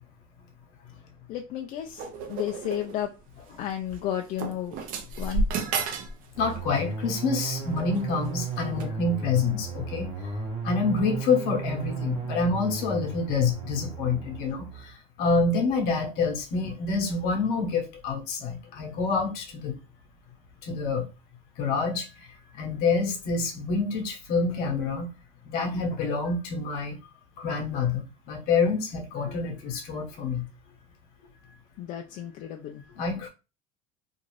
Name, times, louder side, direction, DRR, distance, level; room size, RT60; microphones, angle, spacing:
voice 1, 1.3-3.1 3.6-4.7 5.2-5.5 31.8-32.8, left 11 dB, 50° left, 0.4 m, -32 dB
sound 1, 2.0-3.0 3.9-4.0 4.4-6.2 6.4-6.8 7.6-8.0 8.8-8.9, right 3 dB, 55° right, 0.6 m, -31 dB
sound 2, 6.3-14.9, right 5 dB, 25° right, 0.9 m, -35 dB
voice 2, 6.4-10.4 10.6-19.7 20.6-21.1 21.6-22.3 22.5-25.1 25.4-27.0 27.4-30.4 32.9-33.3, left 4 dB, 65° left, 0.9 m, -27 dB
2.6 x 2.3 x 3.1 m
supercardioid pair, 125°, 17 cm